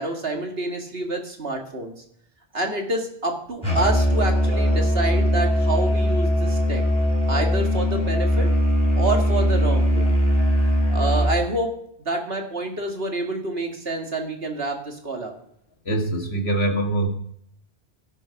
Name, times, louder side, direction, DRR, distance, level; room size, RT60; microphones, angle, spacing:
voice 1, 0.0-2.0 2.5-6.8 7.3-8.5 8.9-10.2 10.7-11.7 12.1-15.3, right 2 dB, 70° right, 2 dB, 2.3 m, -28 dB
Musical instrument, 3.6-11.4, equal, 25° right, 3.8 m, -20 dB
voice 2, 15.9-17.1, right 2 dB, 80° left, 3 dB, 2.3 m, -23 dB
17.0 x 7.3 x 5.8 m, 0.70 s
omnidirectional pair, 1.1 m